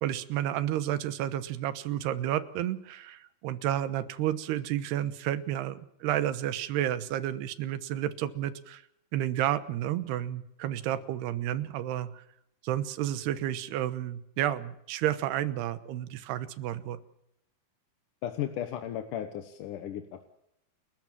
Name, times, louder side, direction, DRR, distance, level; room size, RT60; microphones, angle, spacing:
voice 1, 0.0-8.8 9.1-12.2 12.6-17.0, right 12 dB, 90° right, 14 dB, 3.2 m, -31 dB
voice 2, 18.2-20.2, left 10 dB, 65° left, 7 dB, 2.4 m, -35 dB
29.5 x 14.0 x 7.5 m, 0.81 s
omnidirectional pair, 4.6 m